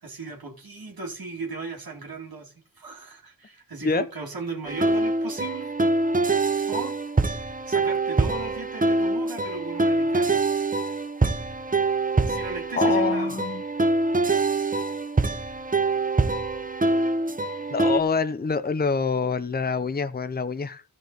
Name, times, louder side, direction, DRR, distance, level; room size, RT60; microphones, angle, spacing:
voice 1, 0.0-5.7 6.7-7.0 7.7-10.4 12.3-13.3, right 3 dB, 80° right, 2.4 m, -37 dB
sound 1, 4.7-18.0, right 2 dB, 25° right, 0.8 m, -24 dB
voice 2, 12.8-13.6 17.7-20.8, left 4 dB, 25° left, 0.6 m, -26 dB
13.5 x 5.3 x 3.9 m
cardioid pair, 45°, 35 cm